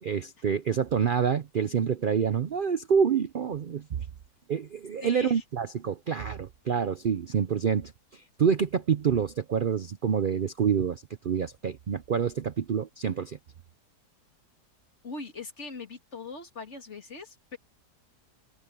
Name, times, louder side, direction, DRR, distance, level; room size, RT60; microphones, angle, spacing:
voice 1, 0.0-3.8 4.5-13.4, right 7 dB, 75° right, 0.4 m, -27 dB
voice 2, 5.0-5.4 15.0-17.6, left 3 dB, 40° left, 2.6 m, -41 dB
omnidirectional pair, 1.8 m